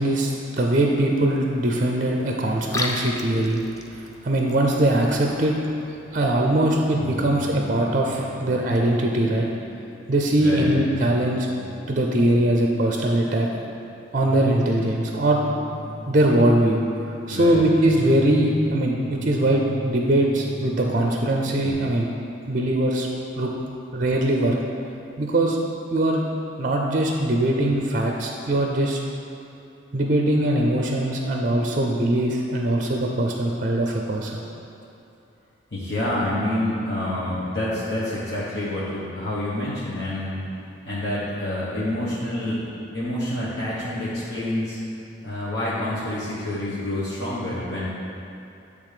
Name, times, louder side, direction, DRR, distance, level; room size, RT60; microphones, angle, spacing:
voice 1, 0.0-5.5 6.1-9.5 10.1-11.5 11.9-13.5 14.1-15.4 16.1-16.8 17.1-22.1 22.5-23.1 23.4-23.5 23.9-24.6 25.2-25.6 25.9-26.2 26.6-29.0 29.9-34.4, right 1 dB, 45° right, 1 dB, 0.5 m, -21 dB
Liquid, 2.5-7.5, left 2 dB, 15° left, 0.3 m, -36 dB
sound 1, 6.9-21.7, left 1 dB, 40° left, 1.1 m, -38 dB
voice 2, 10.4-10.7 17.3-17.6 35.7-40.5 40.8-42.6 42.9-44.8 45.2-47.9, left 1 dB, 60° left, -10 dB, 1.0 m, -27 dB
8.5 x 3.4 x 4.9 m, 2.7 s
head